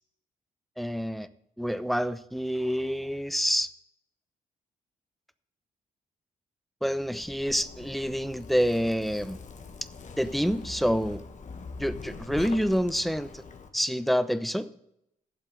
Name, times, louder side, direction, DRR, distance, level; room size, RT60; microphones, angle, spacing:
voice 1, 0.8-1.3 1.6-3.7 6.8-9.4 10.2-11.2 11.8-13.4 13.7-14.7, equal, ahead, 14 dB, 0.7 m, -27 dB
Zipper (clothing), 7.0-13.7, left 4 dB, 45° left, 1.3 m, -43 dB
8.3 x 7.5 x 6.5 m, 0.78 s
hypercardioid pair, 45°, 18 cm